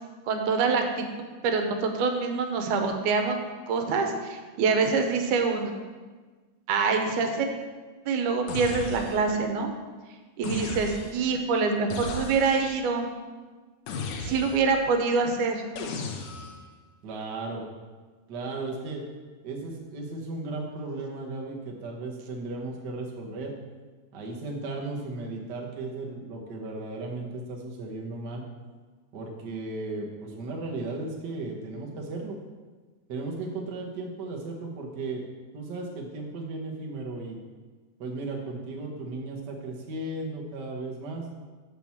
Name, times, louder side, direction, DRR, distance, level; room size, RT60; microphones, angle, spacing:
voice 1, 0.3-1.1 1.4-3.4 3.7-5.7 6.7-7.5 8.1-9.7 10.4-13.0 14.2-15.6, right 4 dB, 85° right, 4 dB, 2.3 m, -25 dB
sound 1, 8.5-9.4 10.4-11.3 11.9-12.8 13.9-14.8 15.8-16.7, left 3 dB, 85° left, 2.4 m, -36 dB
voice 2, 17.0-17.6 18.3-19.0 19.4-23.5 24.1-28.4 29.1-32.4 33.1-35.2 35.5-37.4 38.0-41.3, right 2 dB, 50° right, -1 dB, 1.2 m, -35 dB
6.2 x 5.9 x 7.1 m, 1.4 s
omnidirectional pair, 3.5 m